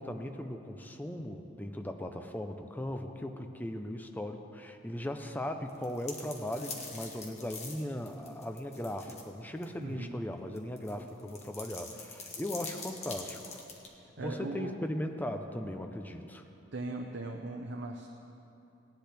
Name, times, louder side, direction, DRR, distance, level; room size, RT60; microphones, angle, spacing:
voice 1, 0.0-13.6 14.2-16.4, left 1 dB, 10° left, 5 dB, 0.5 m, -38 dB
sound 1, 5.7-9.3 9.6-9.7 10.6-13.9, left 4 dB, 35° left, 1.4 m, -44 dB
voice 2, 9.8-10.1 14.2-14.7 16.7-18.1, right 2 dB, 65° right, 2 dB, 0.7 m, -38 dB
18.0 x 10.5 x 3.4 m, 2.8 s
head